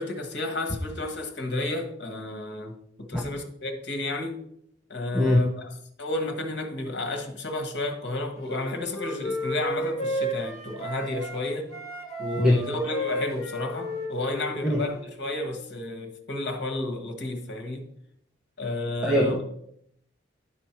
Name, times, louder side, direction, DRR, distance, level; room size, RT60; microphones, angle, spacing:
voice 1, 0.0-2.7 3.0-4.4 4.9-5.7 6.0-11.7 12.2-17.8 18.6-19.4, left 2 dB, 65° left, 1.4 m, -31 dB
Wind instrument woodwind instrument, 8.5-11.4 11.7-15.1, equal, 35° left, 2.3 m, -33 dB
voice 2, 19.0-19.4, left 1 dB, 5° right, 0.8 m, -21 dB
11.0 x 4.5 x 4.5 m
head